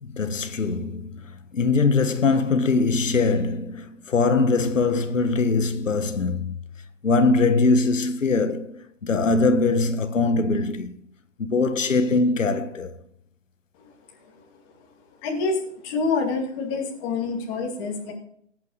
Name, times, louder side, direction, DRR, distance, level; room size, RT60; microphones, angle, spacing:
voice 1, 0.0-6.6 7.0-10.9 11.4-13.0, left 3 dB, 85° left, 1.5 m, -22 dB
voice 2, 15.2-18.1, left 4 dB, 20° left, 2.4 m, -27 dB
17.0 x 8.8 x 4.0 m
hypercardioid pair, 165°, 37 cm